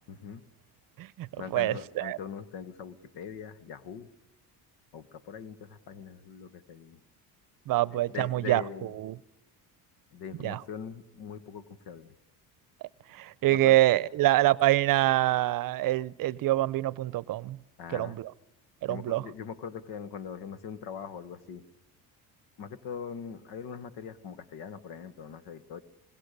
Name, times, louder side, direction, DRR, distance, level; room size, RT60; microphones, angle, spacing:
voice 1, 0.1-0.4 1.4-4.1 4.9-7.0 7.9-8.9 10.1-12.1 13.5-13.8 17.8-18.2 18.9-21.6 22.6-25.8, left 7 dB, 75° left, 1.7 m, -42 dB
voice 2, 1.0-2.2 7.7-8.6 9.0-9.1 10.4-10.6 13.1-17.6 17.9-18.3 18.8-19.2, right 16 dB, 60° right, 0.7 m, -25 dB
27.0 x 20.5 x 6.8 m
cardioid pair, 105°, 39 cm